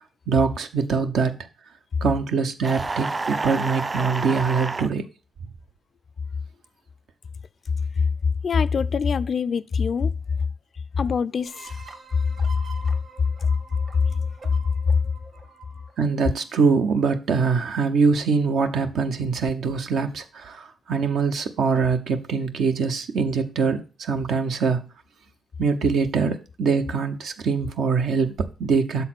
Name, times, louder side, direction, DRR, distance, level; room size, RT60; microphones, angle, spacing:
voice 1, 0.3-1.4 2.0-5.0 16.0-24.9 25.6-29.0, right 5 dB, 75° right, 0.8 m, -23 dB
sound 1, 2.6-4.9, right 3 dB, 35° right, 0.3 m, -29 dB
voice 2, 8.4-10.1 11.0-11.8, left 6 dB, 60° left, 0.3 m, -24 dB
sound 2, 11.5-16.9, right 5 dB, 50° right, 1.5 m, -46 dB
6.7 x 4.1 x 5.9 m
supercardioid pair, 55°, 0 cm